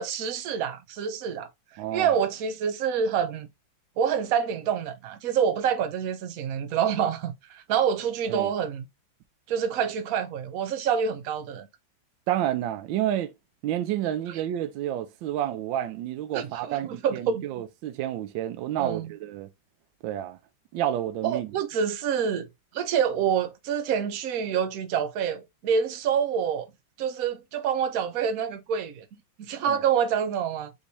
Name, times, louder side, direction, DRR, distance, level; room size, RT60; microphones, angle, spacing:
voice 1, 0.0-1.5 1.9-3.5 4.0-8.9 9.5-11.7 16.3-17.5 18.8-19.1 21.2-22.5 22.7-26.7 27.0-29.0 29.4-30.8, right 7 dB, 60° right, 1.0 m, -27 dB
voice 2, 1.8-2.1 8.3-8.5 12.3-13.3 13.6-19.5 20.0-20.4 20.7-21.5 29.6-29.8, right 12 dB, 80° right, 1.3 m, -30 dB
5.1 x 3.2 x 2.7 m
omnidirectional pair, 2.1 m